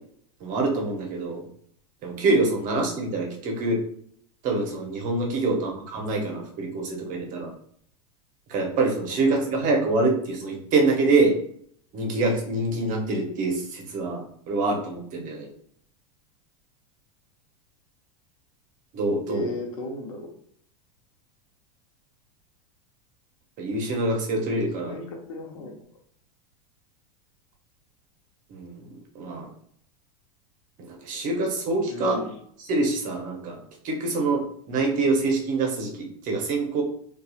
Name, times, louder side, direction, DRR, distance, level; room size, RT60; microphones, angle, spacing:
voice 1, 0.4-1.4 2.0-3.8 4.4-7.5 8.5-11.3 11.9-15.5 18.9-19.5 23.6-25.0 28.5-28.8 29.1-29.5 30.8-32.2 32.7-33.6 33.8-34.4 34.7-36.8, right 2 dB, 45° right, 1 dB, 0.9 m, -25 dB
voice 2, 19.3-20.3 24.9-25.8 31.9-32.4, left 2 dB, 75° left, 2 dB, 0.8 m, -36 dB
2.7 x 2.4 x 2.3 m, 0.65 s
hypercardioid pair, 100°, 18 cm